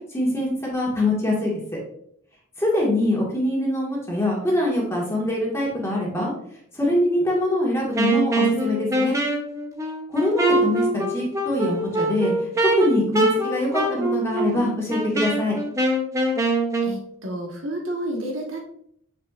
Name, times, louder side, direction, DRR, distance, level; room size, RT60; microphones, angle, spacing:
voice 1, 0.1-1.5 2.6-6.3 6.7-9.2 10.1-15.6, left 1 dB, 15° left, -3 dB, 1.7 m, -23 dB
Wind instrument woodwind instrument, 7.9-17.0, right 1 dB, 15° right, 0.8 m, -24 dB
voice 2, 16.8-18.6, right 1 dB, 70° right, 0 dB, 1.4 m, -30 dB
7.3 x 5.9 x 2.5 m, 0.70 s
head